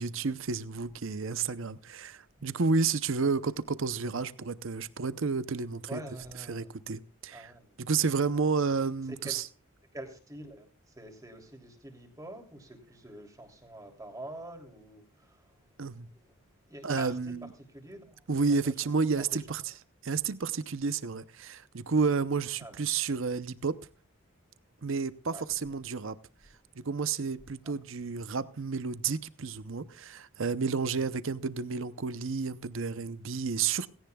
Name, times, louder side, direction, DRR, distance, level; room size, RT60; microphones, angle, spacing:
voice 1, 0.0-6.0 6.5-7.5 7.8-9.5 15.8-16.1 16.8-17.5 18.3-19.7 20.0-23.7 24.8-26.2 26.8-33.9, right 4 dB, 65° right, 0.7 m, -31 dB
voice 2, 5.9-6.7 7.3-7.8 9.1-9.4 9.9-15.6 16.1-16.3 16.6-17.4 17.7-18.2 18.6-18.7 19.1-19.3 22.6-22.8 25.3-25.5 27.6-27.7, right 1 dB, 15° right, 3.0 m, -46 dB
18.0 x 17.0 x 2.3 m
head